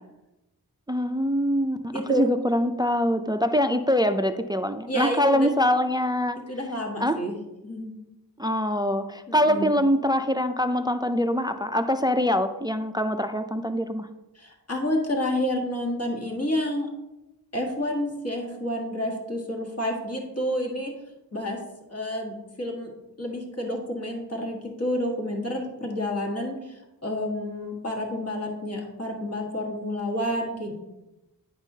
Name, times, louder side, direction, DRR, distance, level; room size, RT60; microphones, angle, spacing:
voice 1, 0.9-6.4 7.0-7.2 8.4-14.1, equal, 10° right, 9 dB, 0.3 m, -24 dB
voice 2, 1.9-2.3 4.9-5.5 6.5-7.4 7.6-7.9 9.3-9.7 14.3-16.9 17.5-20.9 21.3-21.6 21.9-22.9 23.2-30.7, equal, 40° left, 0 dB, 1.5 m, -29 dB
9.7 x 5.4 x 2.7 m, 0.98 s
wide cardioid pair, 80°, 39 cm